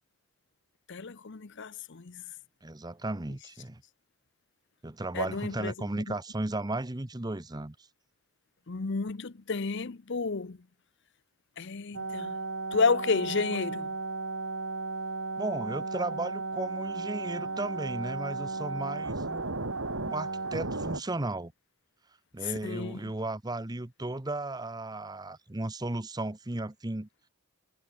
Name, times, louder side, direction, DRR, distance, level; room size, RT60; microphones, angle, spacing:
voice 1, 0.9-2.2 5.1-5.7 8.7-10.6 11.6-12.4 12.7-13.9 22.4-23.0, left 4 dB, 55° left, 0.7 m, -31 dB
voice 2, 2.6-3.8 4.8-7.8 15.4-19.5 20.0-21.5 22.3-27.1, right 2 dB, 20° right, 0.8 m, -35 dB
sound 1, 11.9-21.0, right 3 dB, 65° right, 2.5 m, -34 dB
head